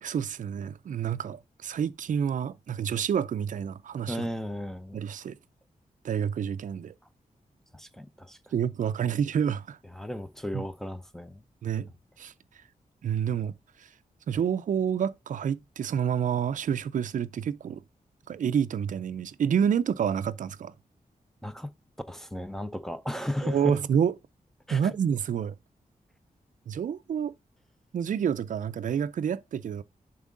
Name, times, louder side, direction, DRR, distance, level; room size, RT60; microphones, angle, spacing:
voice 1, 0.0-4.3 4.9-5.4 6.0-6.9 8.5-9.8 10.5-10.6 11.6-11.9 12.2-12.3 13.0-13.5 13.8-13.9 14.3-17.8 18.3-20.7 23.4-24.1 24.7-25.6 26.7-27.3 27.9-29.8, right 8 dB, 60° right, 0.4 m, -28 dB
voice 2, 4.1-5.0 7.7-8.4 9.9-11.4 21.4-21.7 22.1-23.8 24.7-24.8, left 1 dB, 5° left, 0.5 m, -35 dB
7.2 x 4.6 x 3.7 m
wide cardioid pair, 175°, 15 cm